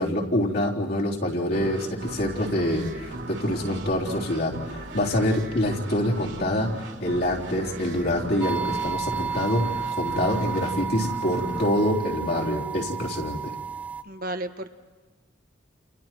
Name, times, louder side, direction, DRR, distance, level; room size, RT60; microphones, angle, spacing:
voice 1, 0.0-13.5, left 1 dB, 60° left, -3 dB, 3.9 m, -26 dB
sound 1, 1.5-13.0, right 1 dB, 70° right, 3.7 m, -38 dB
sound 2, 8.4-14.0, right 6 dB, 10° right, 0.7 m, -32 dB
voice 2, 14.0-14.8, right 1 dB, 55° right, 8 dB, 1.2 m, -33 dB
29.5 x 29.5 x 4.6 m, 1.3 s
head